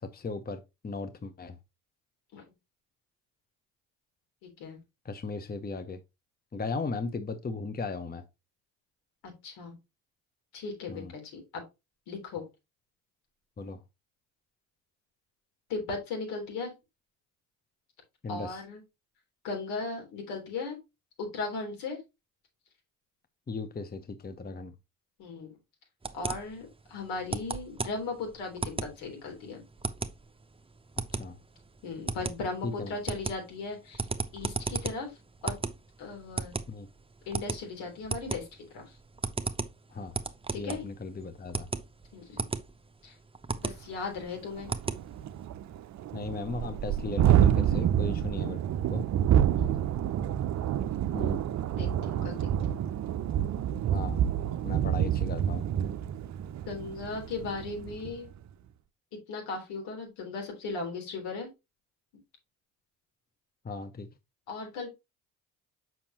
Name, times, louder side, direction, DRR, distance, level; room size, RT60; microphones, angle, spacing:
voice 1, 0.0-1.6 5.0-6.0 6.5-8.2 10.9-11.1 13.6-13.8 18.2-18.6 23.5-24.7 31.1-31.4 32.6-33.0 36.7-36.9 39.9-40.2 40.5-41.7 46.1-48.6 48.9-49.1 51.1-51.4 53.9-54.2 54.6-55.7 63.6-64.1, left 3 dB, 20° left, 1.0 m, -37 dB
voice 2, 4.4-4.8 9.2-9.8 10.5-11.6 12.1-12.4 15.7-16.7 18.3-18.8 19.4-20.8 21.2-22.0 25.2-25.6 26.1-29.6 31.8-34.1 34.3-35.2 35.4-35.6 36.0-36.6 37.3-38.5 38.7-39.0 40.5-40.9 42.1-42.4 43.0-43.1 43.6-44.7 49.6-49.8 51.8-52.8 54.5-54.6 56.7-58.3 59.3-61.5 64.5-64.9, left 3 dB, 70° left, 3.6 m, -37 dB
sound 1, 26.0-45.5, right 3 dB, 15° right, 0.8 m, -36 dB
Thunderstorm, 43.7-43.8 44.2-44.3 44.6-58.2, right 10 dB, 40° right, 0.6 m, -28 dB
7.0 x 5.9 x 2.9 m
hypercardioid pair, 55°, 42 cm